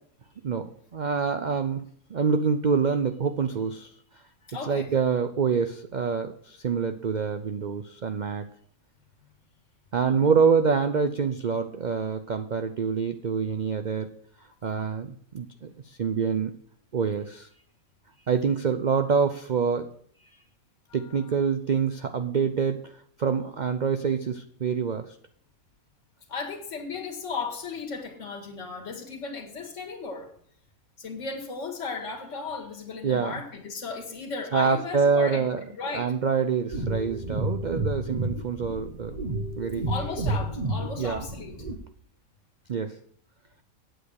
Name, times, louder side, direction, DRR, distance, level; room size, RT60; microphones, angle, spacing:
voice 1, 0.4-1.8 2.1-3.9 4.6-8.5 9.9-14.1 14.6-16.5 16.9-17.5 18.3-19.9 20.9-22.9 23.2-25.2 33.0-33.3 34.5-39.1 39.6-39.9 41.0-41.2 42.7-42.9, right 6 dB, 50° right, 8 dB, 0.5 m, -26 dB
voice 2, 4.5-4.9 10.1-10.3 26.3-30.3 31.0-36.1 39.9-41.6, left 4 dB, 60° left, 0 dB, 2.3 m, -35 dB
sound 1, 36.7-41.8, right 2 dB, 30° right, 1.1 m, -31 dB
8.7 x 7.9 x 6.4 m, 0.62 s
omnidirectional pair, 1.5 m